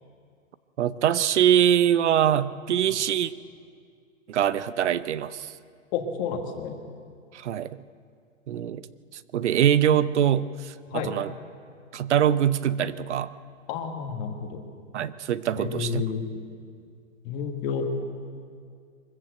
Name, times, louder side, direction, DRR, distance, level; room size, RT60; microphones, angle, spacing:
voice 1, 0.8-3.3 4.3-5.5 7.3-7.8 8.5-8.9 9.1-11.3 11.9-13.3 14.9-16.0, right 10 dB, 60° right, 16 dB, 0.9 m, -23 dB
voice 2, 5.9-6.8 10.9-11.1 13.7-14.6 15.6-16.2 17.2-17.9, left 6 dB, 20° left, 4 dB, 1.6 m, -30 dB
23.5 x 15.0 x 7.9 m, 2.2 s
hypercardioid pair, 170°, 38 cm